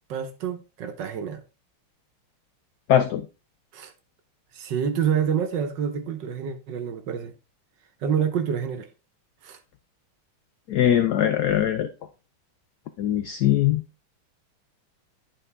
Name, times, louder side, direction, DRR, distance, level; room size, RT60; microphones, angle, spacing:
voice 1, 0.1-1.4 3.7-3.9 4.5-7.3 8.0-8.9 9.4-9.6, right 7 dB, 65° right, 1.3 m, -27 dB
voice 2, 2.9-3.3 10.7-11.9 13.0-13.8, left 11 dB, 80° left, 0.9 m, -21 dB
10.5 x 4.3 x 3.3 m
omnidirectional pair, 2.3 m